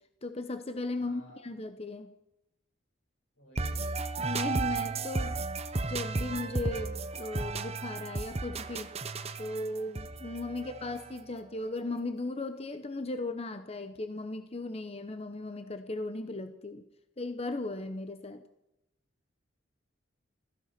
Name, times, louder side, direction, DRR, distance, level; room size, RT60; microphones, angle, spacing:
voice 1, 0.2-2.1 4.2-5.4 5.8-8.9 9.4-16.9 17.2-18.4, left 2 dB, 30° left, 9 dB, 0.9 m, -37 dB
voice 2, 1.0-1.5 3.3-4.0 10.4-11.2, left 1 dB, 90° left, 1 dB, 6.7 m, -56 dB
sound 1, 3.6-11.4, right 3 dB, 35° right, 0.9 m, -34 dB
16.0 x 15.0 x 5.9 m, 0.86 s
head